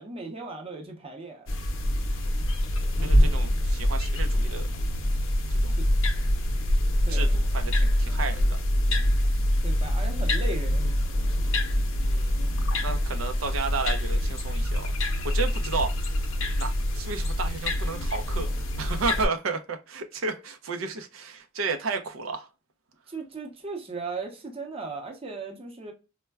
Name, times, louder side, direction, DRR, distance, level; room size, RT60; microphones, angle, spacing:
voice 1, 0.0-1.6 5.8-5.9 7.0-7.3 9.6-10.9 23.1-25.9, right 3 dB, 30° right, 0.7 m, -37 dB
sound 1, 1.5-19.3, left 1 dB, 75° left, 0.6 m, -25 dB
voice 2, 3.0-4.7 5.6-5.8 7.1-8.6 11.9-16.1 16.5-22.5, right 4 dB, 85° right, 0.5 m, -33 dB
4.3 x 2.1 x 2.2 m
head